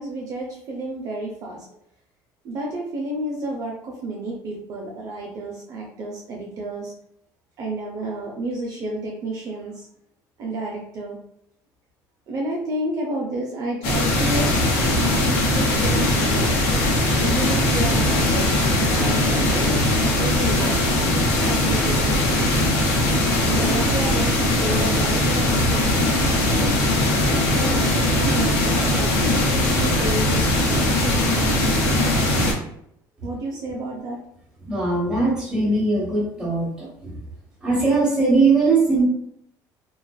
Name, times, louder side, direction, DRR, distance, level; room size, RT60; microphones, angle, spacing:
voice 1, 0.0-1.7 2.4-6.9 7.6-9.9 10.4-11.2 12.3-14.6 15.1-16.5 17.2-20.8 21.3-22.5 23.4-26.8 27.3-31.6 33.2-34.2, right 1 dB, 45° right, -1 dB, 0.5 m, -31 dB
sound 1, 13.8-32.5, left 1 dB, 85° left, 0.8 m, -20 dB
voice 2, 34.6-37.1 37.6-39.0, right 3 dB, 10° right, -4 dB, 1.1 m, -20 dB
2.4 x 2.3 x 2.2 m, 0.71 s
cardioid pair, 115°, 8 cm